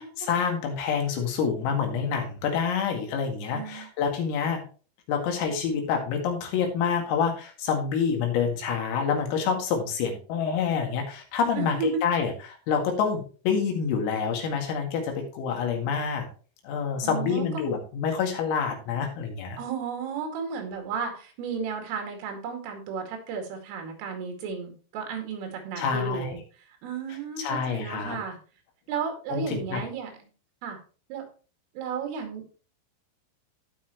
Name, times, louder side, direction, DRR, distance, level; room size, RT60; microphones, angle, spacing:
voice 1, 0.0-4.6 5.1-11.8 12.0-16.3 16.6-19.6 25.8-26.3 27.4-28.2 29.3-29.8, left 6 dB, 80° left, 3 dB, 4.7 m, -27 dB
voice 2, 3.5-3.9 11.5-12.0 15.7-15.9 17.0-17.7 19.6-26.4 26.8-28.4 28.9-30.1 30.6-30.8 31.1-31.3 31.8-32.5, right 6 dB, 75° right, 4 dB, 4.7 m, -33 dB
17.5 x 5.8 x 3.0 m, 0.37 s
omnidirectional pair, 6.0 m